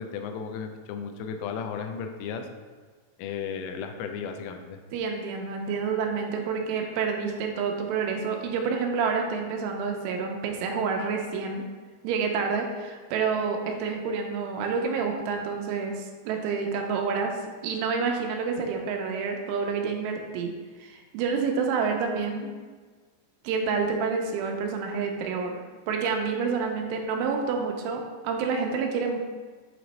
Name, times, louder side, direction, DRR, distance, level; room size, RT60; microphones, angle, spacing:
voice 1, 0.0-2.5 3.2-4.8, left 6 dB, 85° left, 5 dB, 3.1 m, -34 dB
voice 2, 4.9-11.6 12.0-17.3 17.6-20.5 20.8-22.5 23.4-25.6 25.9-29.2, right 5 dB, 85° right, 3 dB, 3.1 m, -28 dB
7.7 x 3.1 x 4.0 m, 1.4 s
omnidirectional pair, 5.7 m